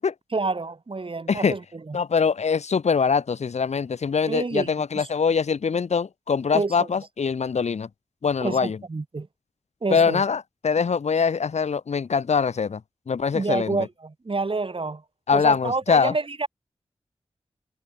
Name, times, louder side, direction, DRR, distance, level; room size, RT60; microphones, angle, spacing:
voice 1, 0.3-2.0 4.3-4.7 4.9-5.1 6.5-6.9 8.4-9.3 9.8-10.2 13.3-15.0 15.3-16.5, right 3 dB, 50° right, 3.4 m, -28 dB
voice 2, 1.9-7.9 8.2-8.8 9.9-12.8 13.1-13.8 15.3-16.1, left 5 dB, 85° left, 1.3 m, -23 dB
cardioid pair, 50°, 11 cm